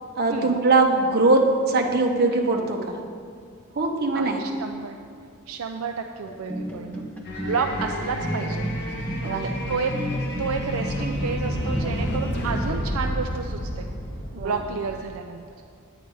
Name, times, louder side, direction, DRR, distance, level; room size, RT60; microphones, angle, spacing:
voice 1, 0.2-3.0 3.7-4.4 9.2-9.5 14.3-14.6, right 3 dB, 45° right, 2 dB, 1.0 m, -21 dB
voice 2, 4.1-5.0 5.5-6.9 7.4-8.7 9.4-9.9 10.4-13.9 14.4-15.4, right 5 dB, 70° right, 4 dB, 0.5 m, -30 dB
sound 1, 6.3-13.1, equal, 5° left, 1.0 m, -34 dB
sound 2, 7.2-15.1, equal, 50° left, 1.3 m, -30 dB
9.4 x 9.1 x 4.8 m, 2.2 s
head